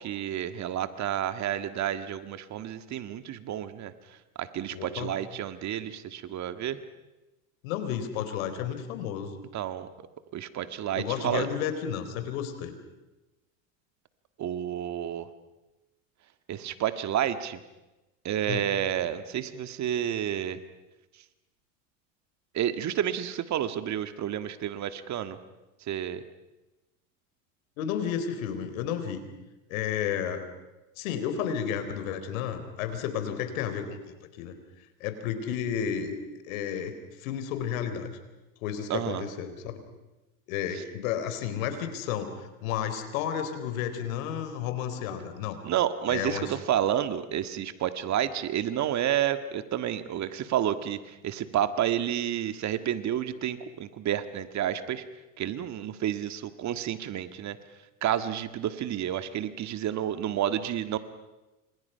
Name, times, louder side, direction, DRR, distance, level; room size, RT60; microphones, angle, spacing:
voice 1, 0.0-3.9 4.4-6.8 9.5-9.9 10.3-11.5 14.4-15.3 16.5-17.6 18.2-20.6 22.5-25.4 25.9-26.2 38.9-39.2 45.6-55.0 55.4-57.6 58.0-61.0, right 10 dB, 40° right, 11 dB, 1.8 m, -30 dB
voice 2, 4.7-5.1 7.6-9.3 10.9-12.8 18.5-18.6 27.8-29.2 29.7-30.5 31.0-34.0 34.3-34.6 35.0-36.2 36.5-38.1 38.6-39.8 40.5-45.6 46.1-46.5, left 8 dB, 70° left, 9 dB, 4.1 m, -32 dB
29.5 x 27.0 x 5.7 m, 1.0 s
hypercardioid pair, 95°, 42 cm